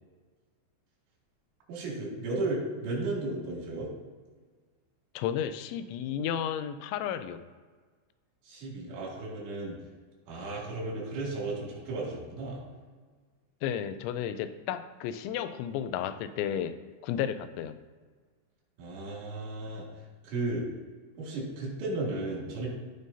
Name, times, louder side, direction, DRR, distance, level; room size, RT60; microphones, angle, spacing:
voice 1, 1.7-3.9 8.4-9.8 10.3-12.6 18.8-19.9 20.2-20.6 21.2-22.7, right 2 dB, 85° right, -4 dB, 4.7 m, -34 dB
voice 2, 5.2-7.4 13.6-16.8 17.0-17.8, left 9 dB, 85° left, 11 dB, 2.9 m, -33 dB
15.5 x 5.4 x 2.7 m, 1.4 s
omnidirectional pair, 5.3 m